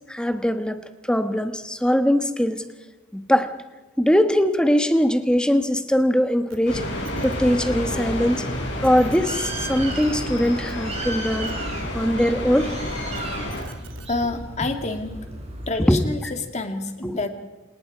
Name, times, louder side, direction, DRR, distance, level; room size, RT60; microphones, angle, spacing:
voice 1, 0.1-0.8 1.1-2.6 3.1-3.5 4.0-6.9 7.2-8.5 8.8-11.5 11.9-12.7 15.9-16.0 17.0-17.1, equal, 5° left, 8 dB, 1.2 m, -21 dB
sound 1, 6.5-6.6 6.9-7.4 8.5-8.6 8.8-9.2 9.8-10.1 10.4-11.5 12.9-14.1 15.1-15.2, right 3 dB, 80° right, 3.1 m, -45 dB
sound 2, 6.7-13.6, left 1 dB, 60° left, 6.8 m, -30 dB
Bird, 7.0-16.0, right 2 dB, 30° right, 5.3 m, -36 dB
voice 2, 14.1-15.2 15.7-17.3, left 3 dB, 35° left, 6 dB, 2.2 m, -28 dB
28.5 x 19.5 x 4.8 m, 1.2 s
head